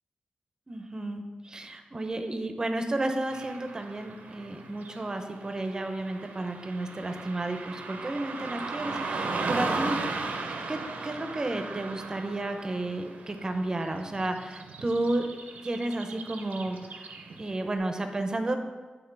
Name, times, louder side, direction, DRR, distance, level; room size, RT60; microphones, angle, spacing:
voice 1, 0.7-10.0 10.7-10.8 11.0-15.3 15.6-17.1 17.4-18.6, right 2 dB, 25° right, 6 dB, 0.5 m, -32 dB
Car passing by / Traffic noise roadway noise, 3.3-17.6, right 3 dB, 85° right, 0.5 m, -37 dB
8.1 x 3.8 x 3.2 m, 1.3 s
wide cardioid pair, 125°, 3 cm